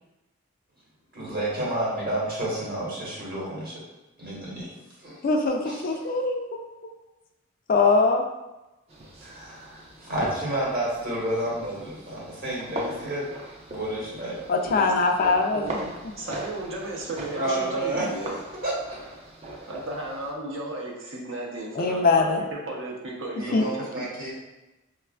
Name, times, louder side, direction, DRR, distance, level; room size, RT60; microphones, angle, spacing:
voice 1, 1.1-3.8 4.2-4.7 5.0-5.2 5.6-6.1 9.2-13.2 13.7-14.4 17.3-18.0 18.6-18.7 23.4-24.3, right 1 dB, 45° right, -5 dB, 1.1 m, -30 dB
voice 2, 5.2-6.6 7.7-8.2 14.5-16.1 21.8-22.4 23.5-23.6, left 3 dB, 45° left, 3 dB, 0.3 m, -22 dB
sound 1, 8.9-20.3, right 1 dB, 30° right, 0.4 m, -40 dB
voice 3, 16.2-18.4 19.7-24.0, right 1 dB, 65° right, -2 dB, 0.7 m, -34 dB
4.8 x 2.3 x 2.2 m, 1.0 s
head